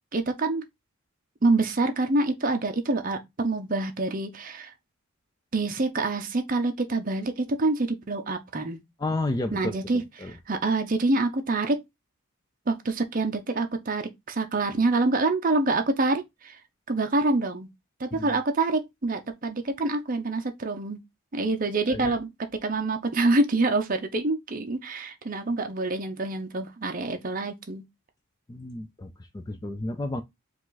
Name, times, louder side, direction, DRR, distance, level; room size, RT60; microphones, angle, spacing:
voice 1, 0.1-0.7 1.4-4.7 5.5-8.8 9.5-11.8 12.7-16.6 16.9-17.7 18.0-21.0 21.3-22.3 22.6-27.8, right 2 dB, 40° right, 0.6 m, -26 dB
voice 2, 9.0-9.8 10.2-10.3 18.2-18.4 21.9-22.2 28.5-30.2, left 2 dB, 20° left, 0.3 m, -31 dB
4.7 x 2.4 x 3.9 m
head